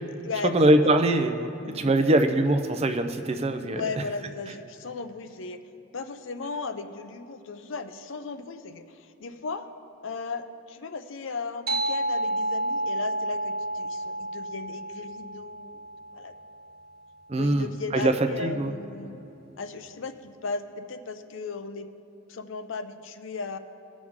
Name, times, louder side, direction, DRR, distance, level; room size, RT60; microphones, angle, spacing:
voice 1, 0.4-3.8 17.3-18.1 18.4-18.7, right 1 dB, 30° right, 7 dB, 0.5 m, -23 dB
voice 2, 3.6-5.6 5.9-9.7 10.0-15.8 16.1-16.3 17.4-19.2 19.6-21.9 22.3-23.6, left 4 dB, 65° left, 9 dB, 0.6 m, -36 dB
sound 1, 11.7-16.6, right 1 dB, 45° right, 0.8 m, -30 dB
18.0 x 6.2 x 3.6 m, 2.8 s
head